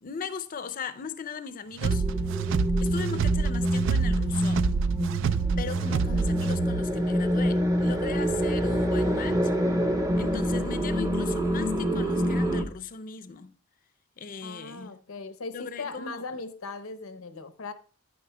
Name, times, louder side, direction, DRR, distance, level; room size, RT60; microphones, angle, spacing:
voice 1, 0.0-2.0 2.8-4.8 5.6-9.5 10.2-13.5 14.2-14.9 15.5-16.4, left 5 dB, 40° left, 0.5 m, -38 dB
sound 1, 1.8-12.6, equal, 15° right, 0.7 m, -27 dB
sound 2, 1.8-6.9, right 5 dB, 60° right, 0.3 m, -27 dB
voice 2, 14.4-17.7, left 3 dB, 80° left, 0.7 m, -38 dB
9.8 x 9.4 x 2.2 m
head